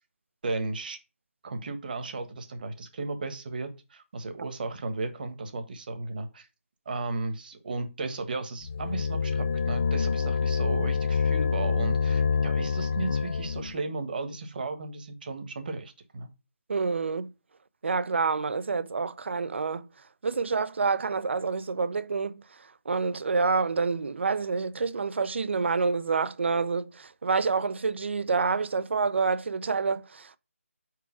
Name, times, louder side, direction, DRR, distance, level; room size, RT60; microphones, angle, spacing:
voice 1, 0.4-1.0 1.4-6.5 6.8-16.3, right 3 dB, 40° right, 1.3 m, -35 dB
sound 1, 8.6-13.8, left 5 dB, 55° left, 0.4 m, -27 dB
voice 2, 16.7-17.3 17.8-19.9 20.2-22.4 22.9-30.4, right 4 dB, 55° right, 0.6 m, -27 dB
4.7 x 4.7 x 5.8 m
hypercardioid pair, 170°, 8 cm